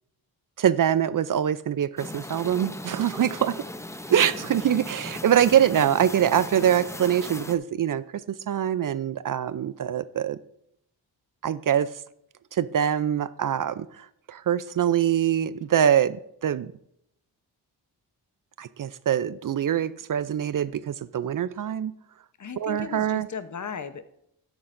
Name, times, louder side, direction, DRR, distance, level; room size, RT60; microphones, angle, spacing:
voice 1, 0.6-3.6 4.1-10.4 11.4-11.9 12.5-16.7 18.6-21.9 22.6-23.3, right 9 dB, 50° right, 16 dB, 0.5 m, -24 dB
sound 1, 2.0-7.6, left 1 dB, 5° left, 0.7 m, -38 dB
voice 2, 22.4-24.1, left 6 dB, 40° left, 11 dB, 0.9 m, -36 dB
13.0 x 9.7 x 2.6 m, 0.76 s
cardioid pair, 50°, 44 cm